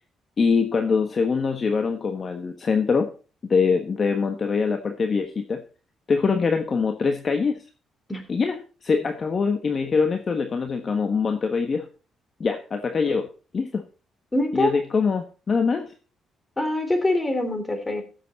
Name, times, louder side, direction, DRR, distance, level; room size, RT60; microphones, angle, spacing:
voice 1, 0.4-3.1 3.5-5.6 6.1-7.6 8.3-11.9 12.4-13.3 13.5-13.8 14.5-15.9, left 5 dB, 40° left, 6 dB, 1.4 m, -23 dB
voice 2, 14.3-14.7 16.6-18.0, left 1 dB, 20° left, 8 dB, 3.3 m, -24 dB
15.5 x 7.4 x 4.2 m, 0.36 s
cardioid pair, 90°, 0 cm